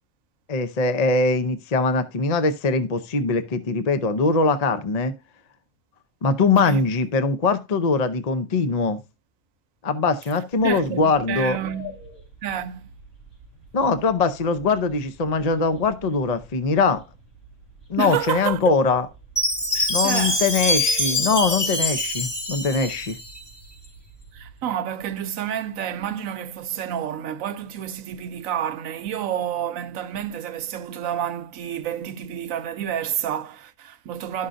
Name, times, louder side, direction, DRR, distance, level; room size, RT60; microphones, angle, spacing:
voice 1, 0.5-5.1 6.2-9.0 9.8-11.6 13.7-17.0 17.9-19.1 19.9-23.2, left 4 dB, 40° left, 0.7 m, -22 dB
sound 1, 10.5-24.6, left 1 dB, 85° left, 4.5 m, -45 dB
voice 2, 10.6-11.9 12.4-12.8 18.0-18.6 19.7-20.4 24.3-34.5, right 10 dB, 85° right, 1.1 m, -29 dB
Chime, 19.4-23.5, left 1 dB, 20° left, 1.1 m, -24 dB
12.5 x 5.7 x 2.5 m
omnidirectional pair, 1.4 m